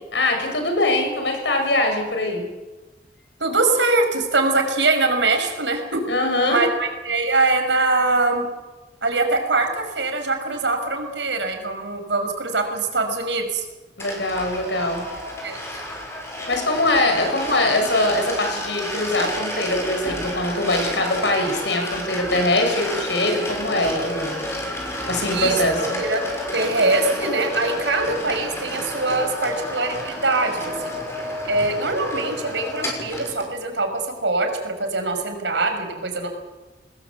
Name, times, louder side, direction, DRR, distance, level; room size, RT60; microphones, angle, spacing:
voice 1, 0.1-2.4 6.1-6.6 14.0-15.0 16.5-24.4 25.1-26.0, left 1 dB, 75° left, 4 dB, 7.2 m, -22 dB
voice 2, 3.4-6.0 6.5-8.5 9.0-13.7 15.4-15.6 25.3-26.2 26.5-30.9 31.4-36.3, right 3 dB, 80° right, 5 dB, 5.6 m, -23 dB
sound 1, 14.0-33.5, left 1 dB, 15° left, 6.2 m, -30 dB
26.5 x 20.0 x 8.2 m, 1.2 s
head